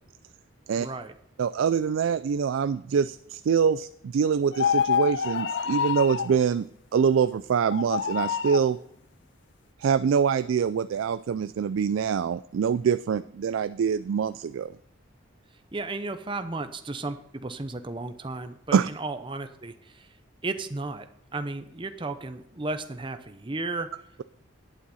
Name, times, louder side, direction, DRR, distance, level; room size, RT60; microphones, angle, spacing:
voice 1, 0.8-1.1 15.7-20.1 20.4-21.1 21.3-23.9, right 3 dB, 25° right, 8 dB, 0.7 m, -34 dB
voice 2, 1.4-6.7 6.9-8.8 9.8-14.7 18.7-18.9, right 7 dB, 80° right, 13 dB, 0.3 m, -25 dB
sound 1, 4.5-6.4 7.7-8.7, left 7 dB, 60° left, 0.4 m, -26 dB
11.0 x 8.9 x 4.2 m, 0.71 s
head